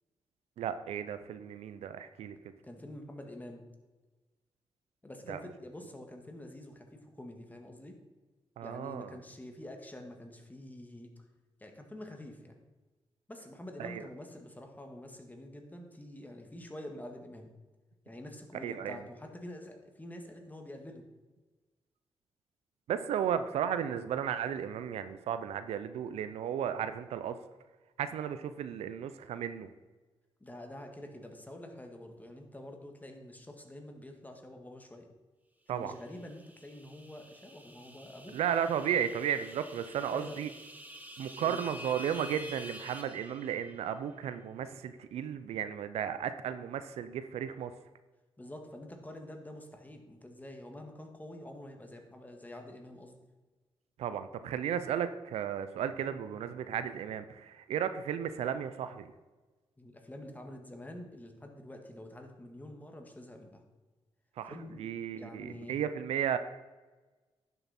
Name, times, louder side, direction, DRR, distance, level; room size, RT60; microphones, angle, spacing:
voice 1, 0.6-2.4 5.3-5.4 8.6-9.1 13.8-14.0 18.6-19.0 22.9-27.4 28.0-29.7 35.7-35.9 38.3-40.5 41.2-47.7 54.0-59.1 64.4-66.4, right 9 dB, 85° right, 11 dB, 0.5 m, -34 dB
voice 2, 2.6-3.7 5.0-7.9 8.6-11.1 11.6-12.6 13.3-17.5 18.1-21.1 30.4-35.1 35.7-38.4 40.1-40.4 41.4-41.6 48.4-53.2 59.8-63.6 64.5-64.9 65.2-65.7, left 1 dB, 15° left, 3 dB, 1.8 m, -47 dB
sound 1, 36.0-44.0, left 1 dB, 15° right, 1.3 m, -49 dB
10.5 x 6.9 x 4.3 m, 1.2 s
cardioid pair, 65°, 10 cm